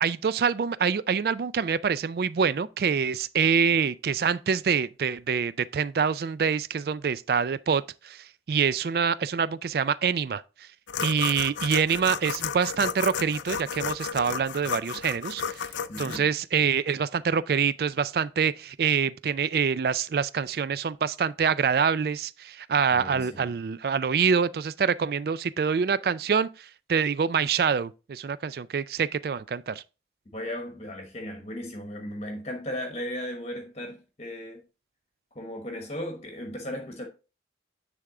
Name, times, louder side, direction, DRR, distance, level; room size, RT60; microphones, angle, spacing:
voice 1, 0.0-10.4 11.0-15.7 16.0-29.8, right 6 dB, 55° right, 0.3 m, -26 dB
sound 1, 10.9-16.2, left 7 dB, 90° left, 0.5 m, -33 dB
voice 2, 15.9-16.3 22.9-23.5 30.3-34.6 35.3-37.1, left 1 dB, 35° left, 1.1 m, -36 dB
9.7 x 3.6 x 3.7 m
head